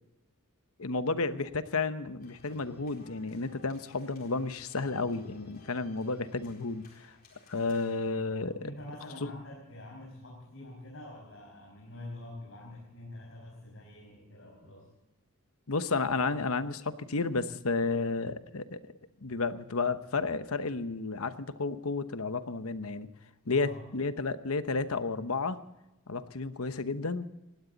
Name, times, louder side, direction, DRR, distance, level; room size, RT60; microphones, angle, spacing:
voice 1, 0.8-7.1 7.5-8.6 9.2-9.3 15.7-18.8 19.2-23.1 23.5-25.6 26.1-27.3, left 3 dB, 80° left, 11 dB, 1.0 m, -32 dB
sound 1, 2.2-8.1, left 2 dB, 40° left, 4.1 m, -58 dB
voice 2, 8.5-14.8 23.5-23.8, left 1 dB, 60° left, -3 dB, 5.6 m, -46 dB
19.0 x 16.5 x 4.0 m, 0.98 s
head